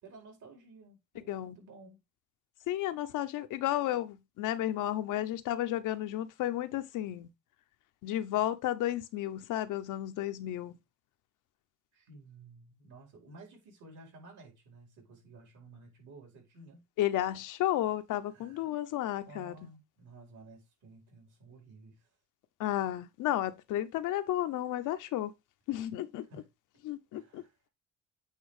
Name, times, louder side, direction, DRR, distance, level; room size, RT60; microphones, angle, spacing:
voice 1, 0.0-2.0 11.9-16.8 18.3-18.7 19.2-22.1 26.2-26.5 27.1-27.7, right 3 dB, 75° right, 4.8 m, -54 dB
voice 2, 2.7-7.3 8.0-10.7 17.0-19.5 22.6-25.3 25.7-26.3 26.8-27.4, left 13 dB, 90° left, 0.9 m, -32 dB
8.6 x 3.5 x 5.0 m
cardioid pair, 90°, 30 cm